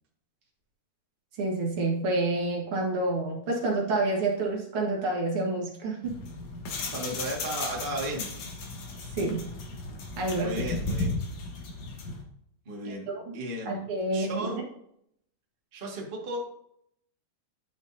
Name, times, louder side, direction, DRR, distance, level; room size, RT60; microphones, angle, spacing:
voice 1, 1.4-6.2 9.1-9.4 10.2-10.6 12.8-13.2 13.6-14.6, right 2 dB, 50° right, -1 dB, 1.7 m, -28 dB
sound 1, 6.0-12.2, left 2 dB, 60° left, 2.1 m, -35 dB
voice 2, 6.9-8.5 10.4-11.1 12.6-13.1 13.3-13.9 14.1-14.6 15.7-16.5, equal, 75° right, -2 dB, 0.5 m, -35 dB
11.5 x 6.2 x 2.7 m, 0.71 s
omnidirectional pair, 4.4 m